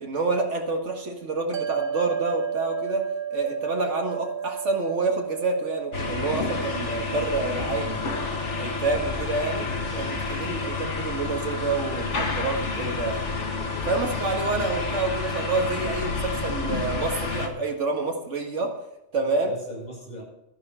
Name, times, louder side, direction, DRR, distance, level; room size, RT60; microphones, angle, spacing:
voice 1, 0.0-8.2 8.6-9.7 10.0-13.3 13.9-18.8 19.1-19.5, right 3 dB, 80° right, 2 dB, 2.1 m, -28 dB
sound 1, 1.5-14.0, right 7 dB, 50° right, 1.0 m, -36 dB
sound 2, 5.9-17.5, left 4 dB, 75° left, 1.9 m, -29 dB
voice 2, 9.8-10.7 14.0-14.3 19.2-20.2, right 1 dB, 40° left, -2 dB, 5.7 m, -40 dB
12.5 x 10.5 x 5.5 m, 0.87 s
omnidirectional pair, 1.2 m